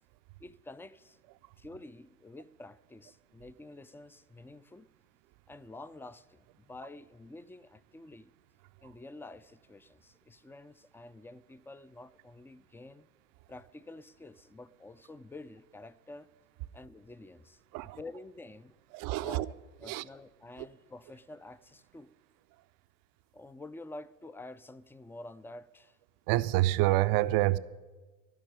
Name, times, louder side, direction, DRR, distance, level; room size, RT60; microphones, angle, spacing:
voice 1, 0.4-1.2 1.6-4.9 5.5-8.3 8.8-13.1 13.5-16.3 16.7-17.6 18.0-18.7 19.2-19.5 19.8-22.1 23.3-26.0, left 2 dB, 5° left, 16 dB, 0.4 m, -49 dB
voice 2, 18.9-19.5 19.8-20.0 20.6-20.7 26.3-27.6, right 17 dB, 55° right, 14 dB, 0.6 m, -27 dB
14.5 x 6.0 x 9.9 m, 1.2 s
figure-of-eight pair, 50°, 40 cm